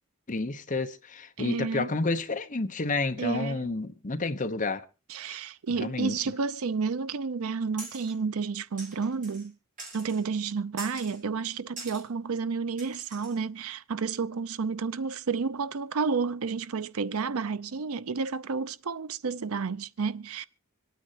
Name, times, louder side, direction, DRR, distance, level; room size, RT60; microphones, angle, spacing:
voice 1, 0.3-4.8 5.3-5.4 5.8-6.1, left 3 dB, 35° left, 0.9 m, -30 dB
voice 2, 1.4-1.9 3.2-3.7 5.1-9.6 9.9-20.5, right 5 dB, 75° right, 0.6 m, -31 dB
sound 1, 7.8-8.2 8.8-9.5 9.8-10.2 10.8-11.2 11.8-12.0 12.8-13.4, right 2 dB, 35° right, 4.8 m, -43 dB
26.0 x 9.4 x 2.9 m
head